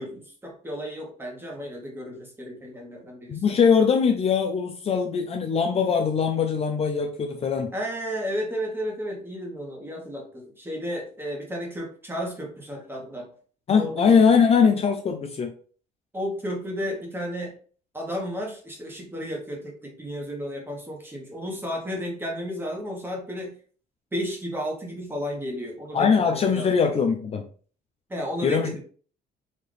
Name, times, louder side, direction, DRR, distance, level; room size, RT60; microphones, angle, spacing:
voice 1, 0.0-3.4 7.7-13.3 13.8-14.1 16.1-17.5 17.9-23.5 24.1-26.7 28.1-28.8, equal, 15° right, 0 dB, 1.5 m, -33 dB
voice 2, 3.3-7.7 13.7-15.5 25.9-27.5 28.4-28.8, left 6 dB, 35° left, 4 dB, 0.5 m, -21 dB
4.2 x 2.9 x 3.2 m, 0.42 s
cardioid pair, 110°, 17 cm